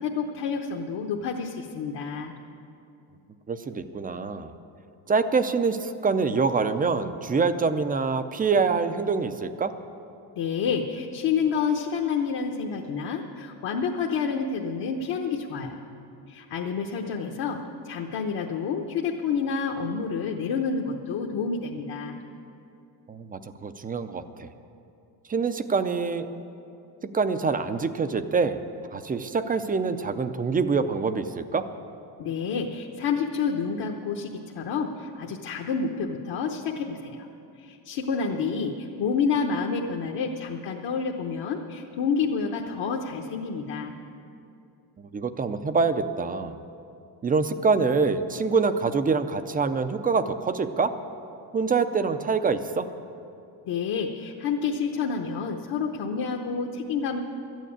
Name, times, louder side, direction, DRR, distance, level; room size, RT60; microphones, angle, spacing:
voice 1, 0.0-2.3 10.3-15.8 16.3-17.6 17.8-22.2 32.2-37.3 37.6-43.9 53.6-57.2, left 5 dB, 60° left, 1 dB, 1.0 m, -29 dB
voice 2, 3.5-4.5 5.1-9.7 23.1-24.5 25.3-26.3 27.1-28.6 28.9-31.6 45.0-46.5 47.2-50.9 51.5-52.9, right 4 dB, 20° right, 10 dB, 0.4 m, -25 dB
12.5 x 9.3 x 8.5 m, 2.6 s
cardioid pair, 140°, 47 cm